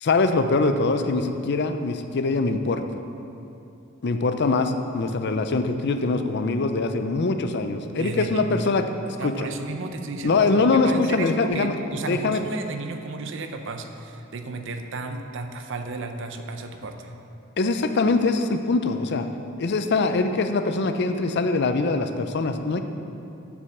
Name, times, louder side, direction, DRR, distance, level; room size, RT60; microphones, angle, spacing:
voice 1, 0.0-2.8 4.0-9.5 10.2-11.7 12.1-12.4 17.6-19.2 19.6-22.8, left 3 dB, 55° left, 8 dB, 0.5 m, -23 dB
voice 2, 8.0-8.7 9.2-17.1, right 3 dB, 65° right, 6 dB, 0.7 m, -33 dB
7.9 x 6.1 x 7.0 m, 2.8 s
head